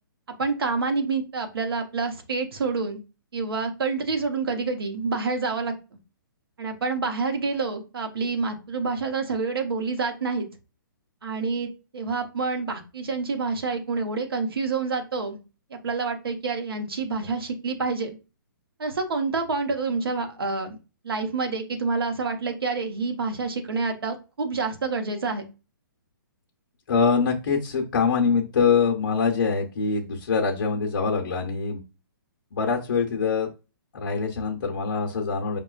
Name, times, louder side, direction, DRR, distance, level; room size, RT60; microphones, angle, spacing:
voice 1, 0.4-3.0 3.3-5.7 6.6-10.5 11.2-15.4 15.7-18.2 18.8-20.8 21.0-25.4, right 4 dB, 85° right, 5 dB, 0.9 m, -28 dB
voice 2, 26.9-31.8 32.5-33.5 33.9-35.6, left 5 dB, 55° left, -1 dB, 0.8 m, -24 dB
5.3 x 2.3 x 2.4 m, 0.30 s
hypercardioid pair, 160°, 12 cm